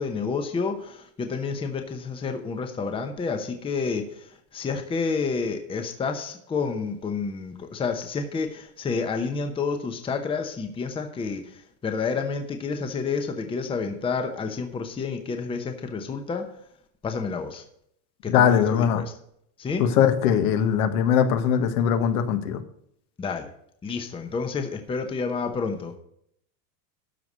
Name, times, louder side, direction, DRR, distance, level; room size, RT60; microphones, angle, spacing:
voice 1, 0.0-4.1 4.5-16.4 17.0-17.6 18.2-19.1 19.6-19.8 23.2-23.5 23.8-25.9, left 5 dB, 10° left, 6 dB, 0.8 m, -29 dB
voice 2, 18.3-19.0 19.8-22.6, left 8 dB, 70° left, 9 dB, 1.5 m, -21 dB
12.5 x 4.8 x 6.6 m, 0.70 s
supercardioid pair, 150°, 46 cm